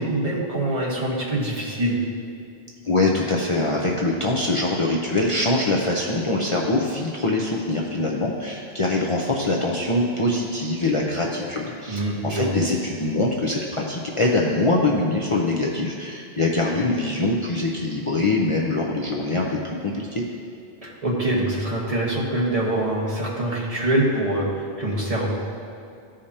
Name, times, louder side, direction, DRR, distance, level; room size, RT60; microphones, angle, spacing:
voice 1, 0.0-2.0 11.9-12.5 20.8-24.5 24.8-25.3, right 1 dB, 35° right, -4 dB, 1.4 m, -24 dB
voice 2, 2.8-20.2, left 2 dB, 35° left, -3 dB, 0.6 m, -23 dB
14.5 x 5.0 x 2.8 m, 2.5 s
omnidirectional pair, 1.0 m